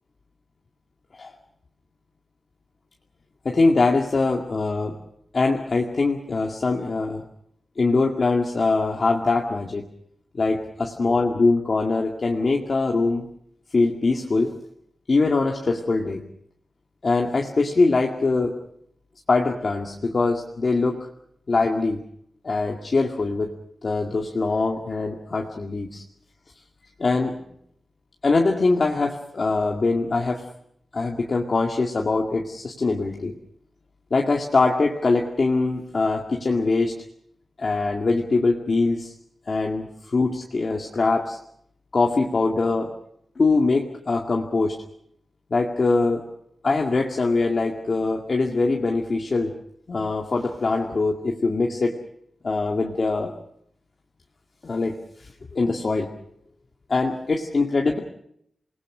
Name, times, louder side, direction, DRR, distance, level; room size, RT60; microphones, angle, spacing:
voice 1, 3.4-5.0 5.3-7.2 7.8-9.8 10.3-13.3 13.7-14.5 15.1-16.2 17.0-18.5 19.3-21.0 21.5-22.0 22.4-23.5 23.8-26.0 27.0-27.3 28.2-30.4 30.9-33.3 34.1-36.9 37.6-39.1 39.5-41.4 41.9-42.9 43.4-44.8 45.5-46.3 46.6-49.5 49.9-52.0 52.4-53.3 54.6-56.1 56.9-58.0, left 3 dB, 40° left, 1 dB, 2.1 m, -22 dB
28.0 x 20.5 x 6.2 m, 0.71 s
wide cardioid pair, 160°, 0 cm